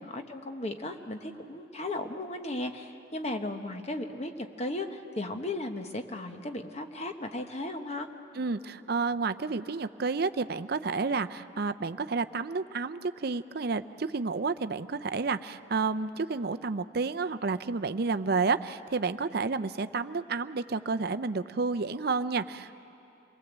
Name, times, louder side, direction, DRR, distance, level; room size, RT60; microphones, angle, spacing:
voice 1, 0.0-8.1, left 2 dB, 30° left, 5 dB, 1.1 m, -36 dB
voice 2, 8.4-22.8, right 4 dB, 50° right, 11 dB, 0.5 m, -30 dB
27.5 x 20.0 x 8.1 m, 2.9 s
head